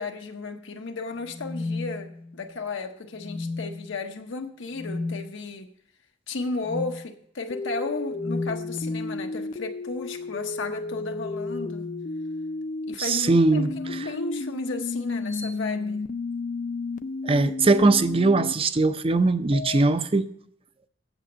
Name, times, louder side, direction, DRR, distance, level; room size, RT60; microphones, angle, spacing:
voice 1, 0.0-5.7 6.3-11.9 12.9-16.0, left 3 dB, 75° left, 0.8 m, -34 dB
sound 1, 1.2-2.5 3.2-3.9 4.7-5.2 6.6-7.0 8.1-9.2 10.7-12.5 13.6-14.0 15.3-15.5, left 3 dB, 10° left, 0.7 m, -35 dB
sound 2, 7.5-12.9 13.6-18.5 19.5-19.8, left 3 dB, 45° left, 0.4 m, -33 dB
voice 2, 13.0-14.0 17.2-20.3, right 3 dB, 30° right, 0.5 m, -21 dB
8.1 x 7.6 x 6.1 m
head